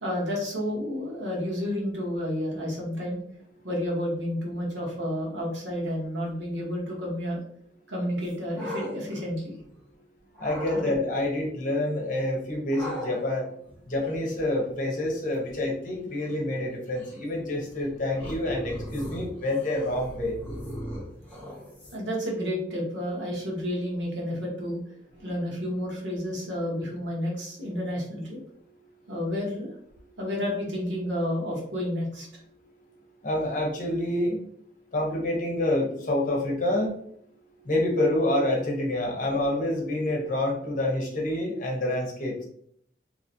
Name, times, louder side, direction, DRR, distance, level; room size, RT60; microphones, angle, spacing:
voice 1, 0.0-3.2 3.6-7.4 7.9-9.5 21.9-24.8 25.2-28.4 29.1-29.7 30.2-32.4, equal, 85° right, -2 dB, 1.2 m, -30 dB
sound 1, 8.2-9.9 10.3-10.9 12.7-22.2, equal, 10° left, 1.2 m, -40 dB
voice 2, 10.4-13.4 13.9-20.4 33.2-34.4 34.9-36.9 37.7-42.3, left 1 dB, 45° left, -1 dB, 0.9 m, -27 dB
2.9 x 2.9 x 2.7 m, 0.66 s
head